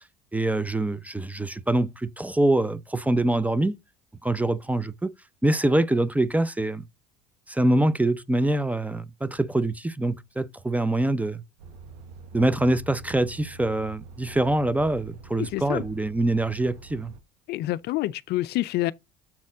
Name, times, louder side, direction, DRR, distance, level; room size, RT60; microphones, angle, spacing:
voice 1, 0.3-3.7 4.2-5.1 5.4-6.8 7.5-11.4 12.3-17.1, right 1 dB, 5° right, 0.7 m, -24 dB
Truck, 11.6-17.2, right 4 dB, 85° right, 1.1 m, -45 dB
voice 2, 15.4-15.8 17.5-18.9, left 16 dB, 55° left, 0.4 m, -27 dB
7.3 x 4.1 x 3.8 m
hypercardioid pair, 70°, 21 cm